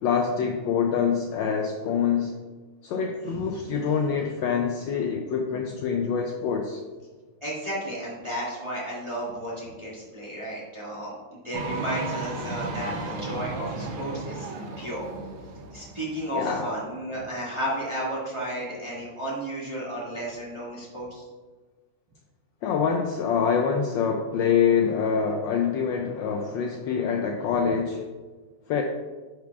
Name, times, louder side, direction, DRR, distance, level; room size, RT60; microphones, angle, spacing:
voice 1, 0.0-2.3 2.8-6.8 12.6-12.8 14.4-14.5 16.3-16.8 22.6-28.1 28.7-28.8, left 6 dB, 75° left, 2 dB, 1.1 m, -25 dB
voice 2, 7.4-14.5 14.8-15.0 15.7-21.2, right 1 dB, 15° right, -8 dB, 1.5 m, -33 dB
sound 1, 11.5-16.8, right 3 dB, 75° right, 1.6 m, -34 dB
9.2 x 4.8 x 2.4 m, 1.3 s
omnidirectional pair, 2.4 m